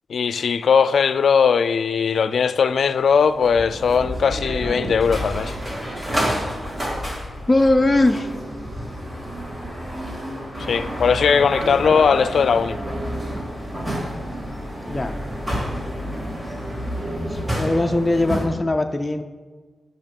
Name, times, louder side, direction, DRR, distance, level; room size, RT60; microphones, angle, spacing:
voice 1, 0.1-5.5 10.7-12.8, left 6 dB, 75° left, 0.4 m, -19 dB
sound 1, 2.9-18.4, equal, 25° right, 2.2 m, -29 dB
voice 2, 7.5-8.4 14.9-15.1 17.3-19.2, left 2 dB, 20° left, 0.5 m, -20 dB
8.8 x 5.6 x 5.3 m
cardioid pair, 80°, 0 cm